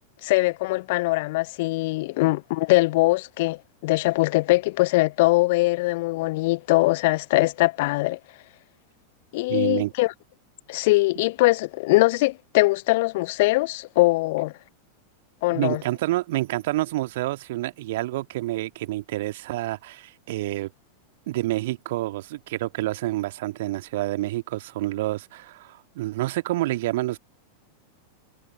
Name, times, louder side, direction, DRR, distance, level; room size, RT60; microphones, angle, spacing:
voice 1, 0.2-8.2 9.3-10.1 10.7-14.5 15.4-15.8, left 21 dB, 50° left, 0.9 m, -22 dB
voice 2, 9.5-9.9 15.5-20.7 21.3-27.2, right 17 dB, 55° right, 1.7 m, -28 dB
figure-of-eight pair, 90°, 0 cm